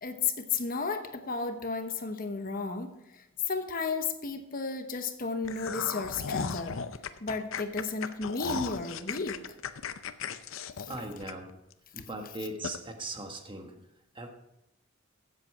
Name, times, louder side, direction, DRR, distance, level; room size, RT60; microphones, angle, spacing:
voice 1, 0.0-2.9 3.1-6.8 7.2-9.4 10.8-10.9, left 4 dB, 40° left, 7 dB, 1.0 m, -33 dB
sound 1, 5.4-11.7 12.1-12.2 12.6-12.8, left 6 dB, 65° left, 0.6 m, -36 dB
voice 2, 10.9-11.5 11.9-13.8 14.1-14.3, right 2 dB, 25° right, 4 dB, 1.3 m, -39 dB
15.0 x 7.9 x 4.8 m, 0.84 s
head